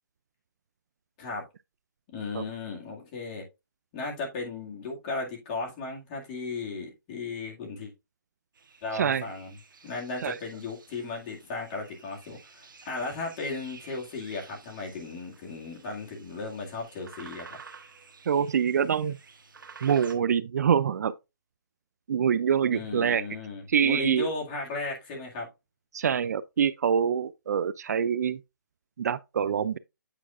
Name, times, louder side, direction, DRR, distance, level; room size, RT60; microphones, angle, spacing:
voice 1, 2.1-3.4 3.9-7.9 8.8-9.6 9.8-17.6 22.7-25.5, left 3 dB, 25° left, 2.0 m, -36 dB
sound 1, 8.5-20.1, right 5 dB, 70° right, 1.2 m, -51 dB
voice 2, 8.9-9.3 10.2-10.4 18.3-19.2 19.8-21.2 22.1-23.2 23.7-24.3 25.9-28.4 29.0-29.8, right 7 dB, 50° right, 0.4 m, -25 dB
8.5 x 5.6 x 2.4 m
hypercardioid pair, 160°, 11 cm